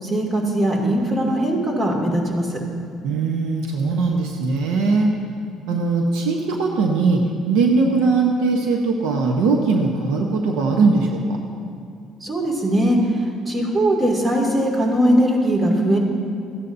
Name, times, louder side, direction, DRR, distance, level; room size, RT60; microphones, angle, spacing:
voice 1, 0.0-2.6 12.2-16.0, right 1 dB, 30° right, 0 dB, 2.4 m, -20 dB
voice 2, 3.0-5.1 5.7-11.4, right 4 dB, 80° right, 2 dB, 0.9 m, -20 dB
15.0 x 9.8 x 2.7 m, 2.5 s
supercardioid pair, 85°, 0 cm